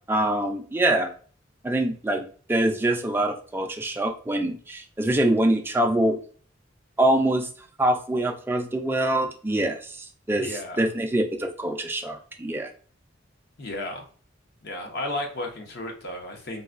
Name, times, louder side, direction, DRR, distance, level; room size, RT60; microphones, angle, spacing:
voice 1, 0.1-1.1 1.6-6.2 7.0-7.5 7.8-12.7, right 1 dB, 10° right, 3 dB, 0.4 m, -24 dB
voice 2, 10.4-10.8 13.6-14.0 14.6-16.6, left 1 dB, 60° left, 2 dB, 0.8 m, -33 dB
3.9 x 2.2 x 2.4 m, 0.42 s
head